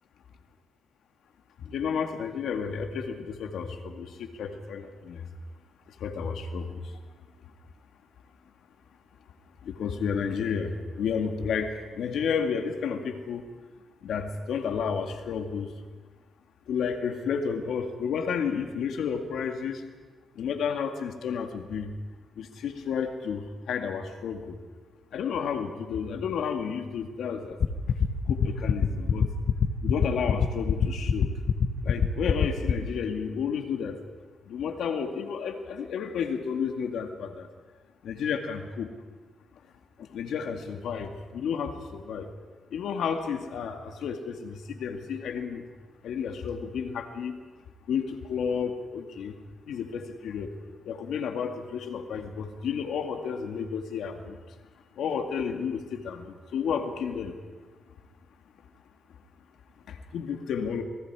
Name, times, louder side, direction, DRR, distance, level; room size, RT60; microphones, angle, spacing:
voice 1, 1.7-5.2 6.0-6.7 9.7-10.7 11.0-13.4 14.0-15.7 16.7-19.8 20.4-21.9 22.4-24.6 25.1-27.6 28.3-29.2 29.8-31.3 31.8-34.0 34.5-37.5 38.0-38.9 40.1-42.3 42.7-45.6 46.0-47.4 47.9-49.3 49.7-50.5 50.9-54.4 55.0-56.2 56.5-57.3 60.1-60.8, left 6 dB, 80° left, 6 dB, 2.0 m, -31 dB
sound 1, 27.6-32.7, left 7 dB, 60° left, 1.3 m, -22 dB
27.0 x 19.5 x 4.9 m, 1.4 s
cardioid pair, 85°, 0 cm